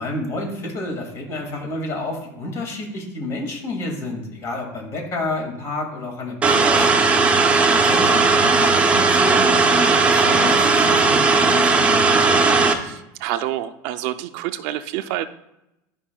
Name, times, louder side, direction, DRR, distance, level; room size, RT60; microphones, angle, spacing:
voice 1, 0.0-7.1 7.7-12.2, left 2 dB, 40° left, 1 dB, 2.1 m, -30 dB
sound 1, 6.4-12.7, right 4 dB, 15° right, 0.7 m, -16 dB
voice 2, 12.8-15.3, right 13 dB, 70° right, 11 dB, 0.4 m, -28 dB
11.5 x 5.3 x 2.3 m, 0.86 s
supercardioid pair, 135°, 8 cm